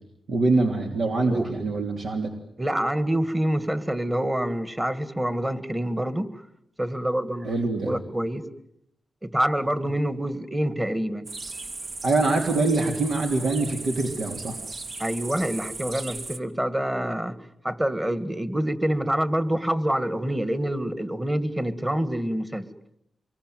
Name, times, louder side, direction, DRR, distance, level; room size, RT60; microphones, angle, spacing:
voice 1, 0.3-2.3 7.4-7.9 12.0-14.6, right 3 dB, 70° right, 2 dB, 3.2 m, -24 dB
voice 2, 2.6-6.3 6.8-7.6 7.8-8.4 9.2-11.3 15.0-17.4 17.6-22.6, right 1 dB, 15° right, 13 dB, 2.0 m, -26 dB
sound 1, 11.2-16.4, right 3 dB, 50° right, 2.2 m, -37 dB
26.5 x 23.0 x 9.4 m, 0.78 s
cardioid pair, 90°, 0 cm